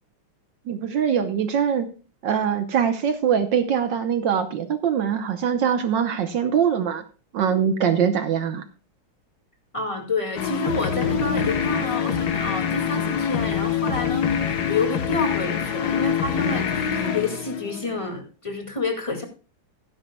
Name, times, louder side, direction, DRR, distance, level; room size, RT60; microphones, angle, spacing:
voice 1, 0.7-1.9 2.2-7.0 7.3-8.6, right 7 dB, 65° right, 8 dB, 1.5 m, -22 dB
voice 2, 9.7-19.2, left 3 dB, 15° left, 3 dB, 1.9 m, -29 dB
sound 1, 10.4-18.1, left 8 dB, 55° left, 1.4 m, -25 dB
16.5 x 10.0 x 2.2 m, 0.36 s
omnidirectional pair, 2.4 m